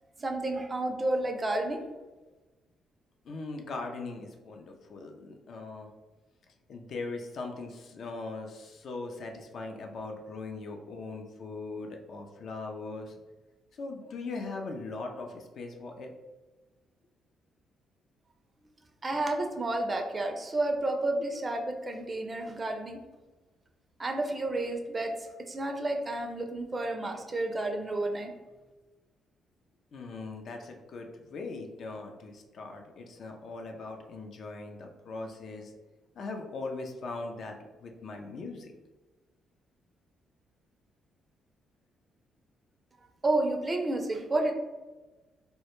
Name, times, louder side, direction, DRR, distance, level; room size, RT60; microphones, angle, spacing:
voice 1, 0.2-1.8 19.0-23.0 24.0-25.1 25.5-28.3 43.2-44.5, right 2 dB, 25° right, 3 dB, 0.4 m, -30 dB
voice 2, 3.2-5.9 6.7-13.1 13.7-16.1 29.9-35.7 36.1-38.7, left 3 dB, 60° left, 3 dB, 0.3 m, -40 dB
2.1 x 2.1 x 2.9 m, 1.2 s
cardioid pair, 90°, 0 cm